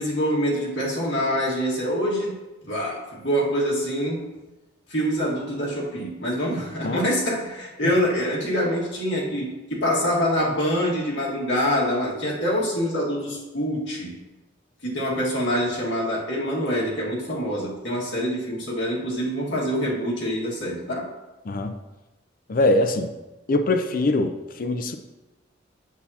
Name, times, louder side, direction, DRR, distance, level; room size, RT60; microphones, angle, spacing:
voice 1, 0.0-2.3 2.7-4.2 4.9-14.1 14.8-21.1, equal, 65° left, -4 dB, 1.9 m, -25 dB
voice 2, 22.5-23.1 23.5-25.0, left 2 dB, 45° left, 7 dB, 0.5 m, -22 dB
8.3 x 7.1 x 2.8 m, 1.1 s
head